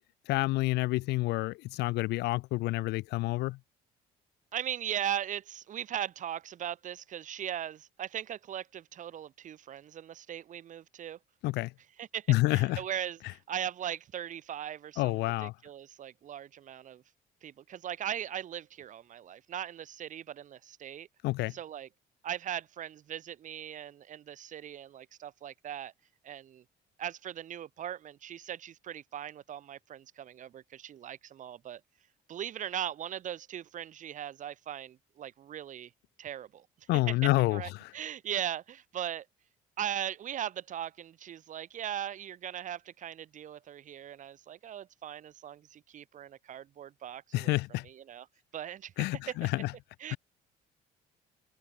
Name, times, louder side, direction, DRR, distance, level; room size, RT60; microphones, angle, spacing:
voice 1, 0.3-3.6 11.4-11.7 12.3-12.8 15.0-15.5 21.2-21.6 36.9-37.9 47.3-47.9 49.0-49.7 50.1-50.2, left 20 dB, 85° left, 0.7 m, -28 dB
voice 2, 4.5-11.2 12.0-17.0 17.4-21.1 21.5-21.9 22.2-25.9 26.2-26.6 27.0-31.8 32.3-35.9 36.2-39.3 39.8-47.6 47.8-48.2 48.5-49.3 50.0-50.2, right 10 dB, 50° right, 0.9 m, -39 dB
cardioid pair, 110°, 17 cm